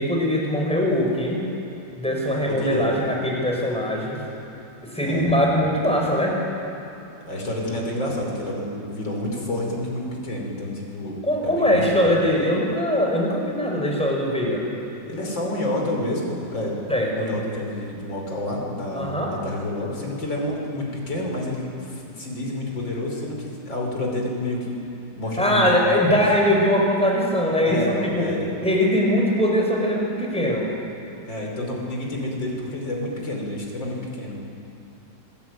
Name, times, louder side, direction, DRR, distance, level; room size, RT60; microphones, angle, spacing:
voice 1, 0.0-1.4 2.0-4.2 4.9-6.4 11.2-14.6 16.9-17.3 18.9-19.3 25.4-28.3 28.6-30.7, equal, 5° left, -1 dB, 5.2 m, -21 dB
voice 2, 2.4-2.9 5.0-5.3 7.3-11.2 11.4-12.1 15.1-16.8 17.1-24.8 25.2-26.2 27.6-28.5 31.3-34.4, left 1 dB, 90° left, 0 dB, 5.8 m, -29 dB
27.5 x 21.5 x 9.5 m, 2.8 s
omnidirectional pair, 2.0 m